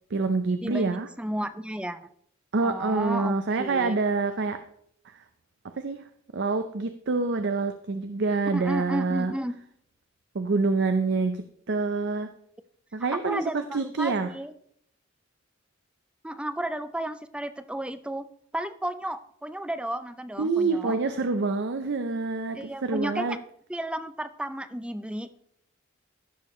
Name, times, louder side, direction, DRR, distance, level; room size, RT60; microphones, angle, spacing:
voice 1, 0.1-1.1 2.5-4.6 5.1-5.2 5.8-6.1 6.3-9.3 10.3-12.3 12.9-14.3 20.4-23.4, right 3 dB, 55° right, 8 dB, 0.6 m, -26 dB
voice 2, 0.6-2.0 2.6-4.0 8.5-9.5 13.1-14.5 16.2-18.3 18.5-21.0 22.5-23.4 23.7-25.4, right 1 dB, 5° right, 11 dB, 0.5 m, -33 dB
15.5 x 6.7 x 3.1 m, 0.67 s
head